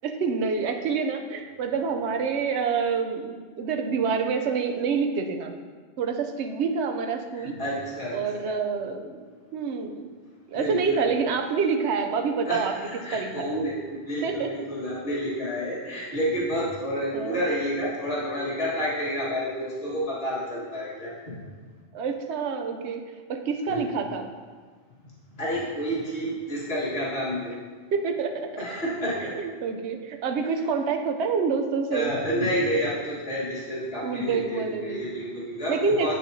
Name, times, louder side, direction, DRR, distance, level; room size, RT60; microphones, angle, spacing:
voice 1, 0.0-5.5 6.0-7.5 8.1-9.2 9.5-10.1 10.5-12.7 13.1-13.6 14.2-14.5 17.1-17.4 21.9-23.0 23.3-24.3 27.9-28.5 29.2-32.1 34.0-35.2 35.7-36.1, right 5 dB, 75° right, 5 dB, 0.9 m, -27 dB
voice 2, 7.3-8.6 10.5-11.0 12.5-21.4 23.7-23.8 25.4-27.5 28.6-29.3 31.9-36.1, equal, 60° left, -8 dB, 1.9 m, -29 dB
7.8 x 6.3 x 2.7 m, 1.5 s
omnidirectional pair, 1.2 m